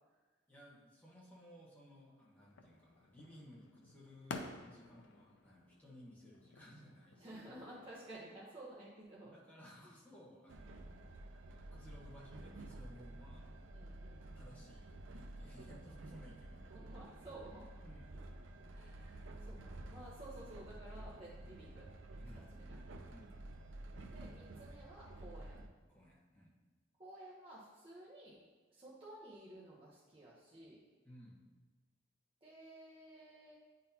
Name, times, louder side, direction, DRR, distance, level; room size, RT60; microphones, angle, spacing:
voice 1, 0.5-7.4 9.2-10.8 11.2-13.6 14.3-16.6 17.8-18.1 21.4-21.6 22.2-22.7 23.1-23.4 25.4-25.5 25.9-26.6 31.0-31.5, equal, 10° left, -5 dB, 1.2 m, -58 dB
sound 1, 2.4-8.1, left 3 dB, 65° left, 0.5 m, -52 dB
voice 2, 7.2-9.3 9.8-9.9 13.7-14.3 16.7-17.7 18.7-21.9 22.3-22.8 24.1-25.6 27.0-28.4 28.7-30.8 32.4-33.5, right 1 dB, 30° right, -8 dB, 1.0 m, -54 dB
Train, 10.5-25.7, right 1 dB, 70° right, 0.5 m, -51 dB
9.2 x 3.9 x 2.8 m, 1.3 s
head